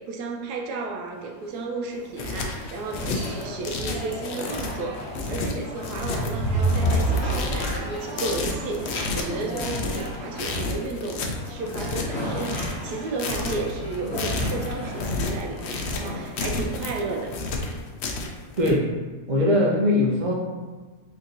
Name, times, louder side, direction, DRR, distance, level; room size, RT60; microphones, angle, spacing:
voice 1, 0.0-17.4, right 3 dB, 80° right, 1 dB, 1.1 m, -33 dB
sound 1, 1.2-18.2, left 1 dB, 45° left, 1.1 m, -37 dB
sound 2, 1.9-18.7, left 3 dB, 85° left, 0.5 m, -31 dB
sound 3, 6.1-8.0, right 2 dB, 65° left, 0.9 m, -25 dB
voice 2, 19.3-20.3, left 1 dB, 45° right, -3 dB, 0.6 m, -20 dB
3.5 x 2.8 x 3.8 m, 1.4 s
omnidirectional pair, 1.7 m